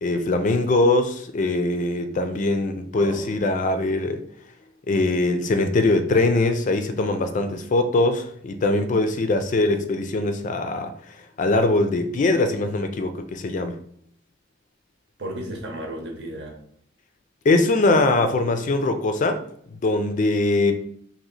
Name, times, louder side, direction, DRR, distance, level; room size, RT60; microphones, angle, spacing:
voice 1, 0.0-4.2 4.9-10.9 11.4-13.8 17.4-19.4 19.8-20.7, left 2 dB, 40° left, 8 dB, 0.4 m, -22 dB
voice 2, 2.9-3.4 15.2-16.6, right 1 dB, 65° right, 2 dB, 0.9 m, -34 dB
2.8 x 2.8 x 4.0 m, 0.66 s
head